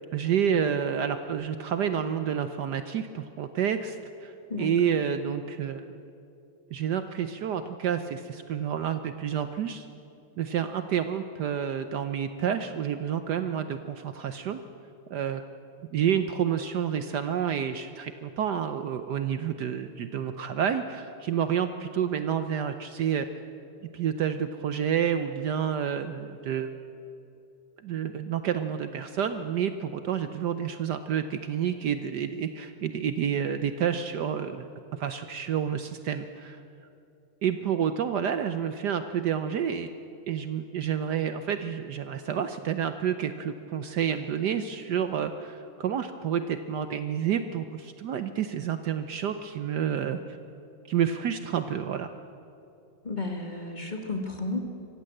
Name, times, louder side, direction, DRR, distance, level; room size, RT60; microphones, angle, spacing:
voice 1, 0.1-5.8 6.7-9.9 10.4-14.6 15.1-15.4 15.9-23.3 23.9-26.7 27.8-34.7 35.0-36.6 37.4-39.9 40.3-50.2 50.9-52.1, right 8 dB, 65° right, 9 dB, 1.2 m, -29 dB
voice 2, 53.0-54.6, left 2 dB, 25° left, 3 dB, 1.9 m, -32 dB
24.5 x 15.5 x 7.8 m, 2.7 s
omnidirectional pair, 2.1 m